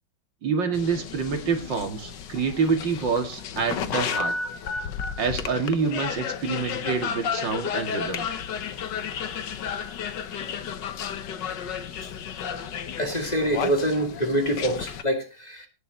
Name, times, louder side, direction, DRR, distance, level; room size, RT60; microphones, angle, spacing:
voice 1, 0.4-4.3 5.2-8.3, right 5 dB, 60° right, 2.9 m, -27 dB
sound 1, 0.7-15.0, left 7 dB, 60° left, 1.6 m, -32 dB
voice 2, 13.0-15.7, right 1 dB, 20° left, 2.5 m, -25 dB
18.0 x 6.9 x 4.0 m
omnidirectional pair, 2.3 m